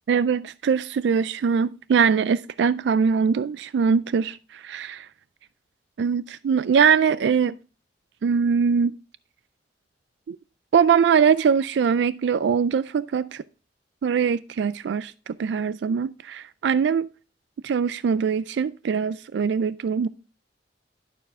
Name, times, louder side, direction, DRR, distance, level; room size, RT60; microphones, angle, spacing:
voice 1, 0.1-5.0 6.0-7.6 8.2-8.9 10.3-10.4 10.7-13.4 14.0-17.1 17.6-20.1, right 6 dB, 75° right, 0.3 m, -22 dB
11.5 x 6.9 x 3.5 m
head